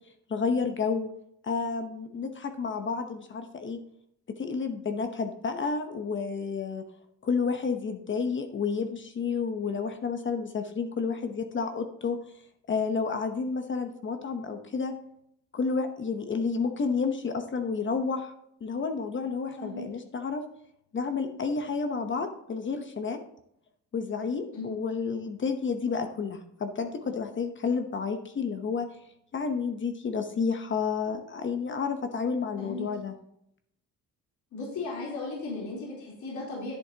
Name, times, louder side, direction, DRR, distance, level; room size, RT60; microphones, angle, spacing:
voice 1, 0.3-1.1 1.4-3.8 4.3-6.8 7.2-12.2 12.7-14.9 15.5-18.3 18.6-20.4 20.9-23.2 23.9-28.9 29.3-33.1, left 5 dB, 40° left, 6 dB, 0.9 m, -30 dB
voice 2, 32.6-32.9 34.5-36.8, left 3 dB, 75° left, -5 dB, 3.6 m, -36 dB
10.5 x 8.4 x 2.9 m, 0.74 s
cardioid pair, 90°, 30 cm